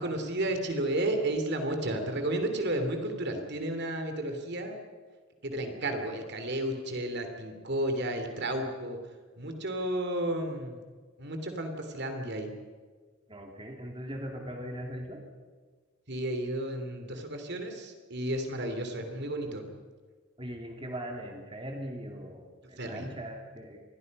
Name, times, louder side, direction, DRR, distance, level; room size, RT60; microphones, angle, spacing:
voice 1, 0.0-4.8 5.4-9.0 9.4-10.8 11.2-12.5 16.1-19.6 22.8-23.1, right 1 dB, 55° right, 6 dB, 3.1 m, -32 dB
voice 2, 13.3-15.2 20.4-23.8, equal, 25° right, 2 dB, 2.9 m, -40 dB
27.5 x 22.0 x 5.5 m, 1.5 s
head